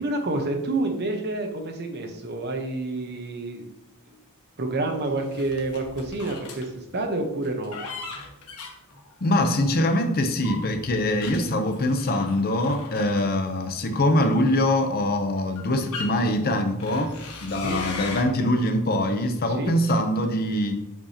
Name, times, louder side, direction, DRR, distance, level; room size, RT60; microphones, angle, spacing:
voice 1, 0.0-3.7 4.1-4.2 4.6-7.8 17.6-17.8 19.5-19.7, right 2 dB, 50° right, 4 dB, 0.9 m, -28 dB
sound 1, 5.2-6.7 7.4-9.9 10.4-13.7 14.6-14.7 15.3-16.1 16.8-18.2, left 4 dB, 85° left, 1.2 m, -39 dB
voice 2, 9.2-20.7, left 1 dB, 45° left, 7 dB, 0.7 m, -23 dB
7.9 x 4.8 x 2.8 m, 0.85 s
head